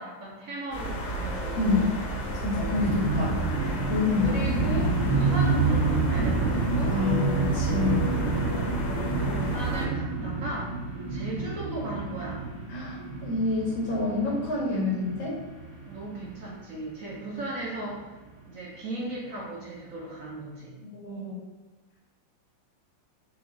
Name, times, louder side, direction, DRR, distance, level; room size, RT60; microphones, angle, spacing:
voice 1, 0.0-2.2 4.2-7.0 9.2-10.8 11.1-12.4 15.9-18.1 18.4-20.8, right 2 dB, 55° right, -5 dB, 1.1 m, -36 dB
sound 1, 0.7-9.9, right 1 dB, 60° left, 1.6 m, -32 dB
voice 2, 1.6-1.9 2.4-3.4 3.9-4.5 6.9-8.1 12.7-15.4 20.9-21.4, left 3 dB, 80° left, -4 dB, 1.9 m, -27 dB
sound 2, 2.7-16.6 17.0-17.4 17.7-18.0, right 3 dB, 80° right, 1.9 m, -29 dB
4.8 x 2.5 x 3.8 m, 1.2 s
omnidirectional pair, 2.0 m